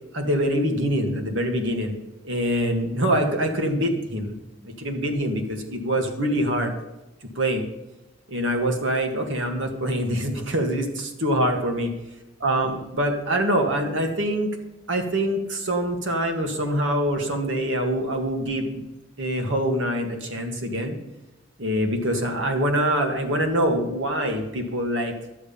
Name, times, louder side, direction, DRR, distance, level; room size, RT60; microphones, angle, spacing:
voice 1, 0.1-2.0 2.2-4.4 4.8-6.7 7.4-7.6 8.3-11.9 12.4-14.5 14.9-18.8 19.2-21.0 21.6-25.1, equal, 65° right, 4 dB, 2.0 m, -24 dB
11.5 x 8.7 x 5.6 m, 1.0 s
head